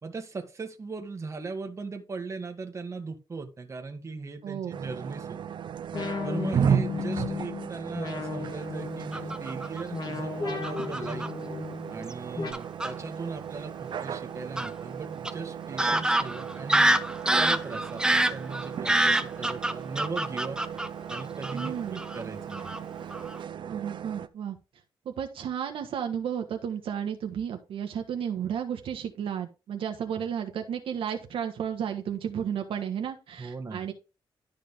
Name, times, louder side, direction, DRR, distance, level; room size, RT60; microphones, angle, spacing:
voice 1, 0.0-5.4 6.2-11.3 11.9-17.1 17.4-20.6 21.1-22.7 33.4-33.9, right 4 dB, 35° right, 5 dB, 1.8 m, -38 dB
voice 2, 4.4-4.8 6.7-6.8 21.5-22.0 23.6-24.6 25.0-33.9, right 8 dB, 80° right, 5 dB, 1.4 m, -33 dB
sound 1, 4.7-24.3, right 8 dB, 60° right, 0.7 m, -35 dB
sound 2, 5.9-12.5, left 4 dB, 50° left, 2.2 m, -35 dB
Fowl / Bird vocalization bird call bird song, 9.1-9.8 10.6-11.3 12.1-12.2 12.5-12.9 14.6-14.7 15.2-15.3 15.8-21.7 22.0-22.2 22.5-22.8 23.1-23.4, right 1 dB, 10° right, 0.7 m, -26 dB
12.0 x 5.1 x 3.7 m, 0.30 s
cardioid pair, 115°, 9 cm